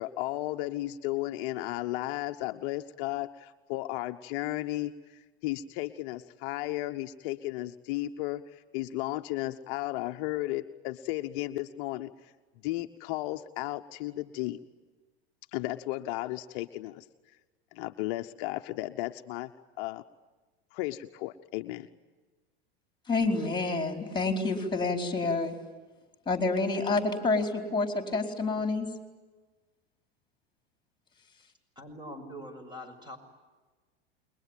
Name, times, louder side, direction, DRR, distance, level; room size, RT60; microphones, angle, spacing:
voice 1, 0.0-12.1 12.6-14.6 15.5-17.1 17.7-19.5 19.8-20.0 20.7-21.9, left 17 dB, 55° left, 7 dB, 1.1 m, -34 dB
voice 2, 23.1-25.6 26.3-28.9, left 3 dB, 15° left, 5 dB, 4.4 m, -28 dB
voice 3, 31.8-33.2, equal, 15° right, 9 dB, 6.1 m, -43 dB
29.0 x 22.0 x 9.2 m, 1.3 s
hypercardioid pair, 100°, 32 cm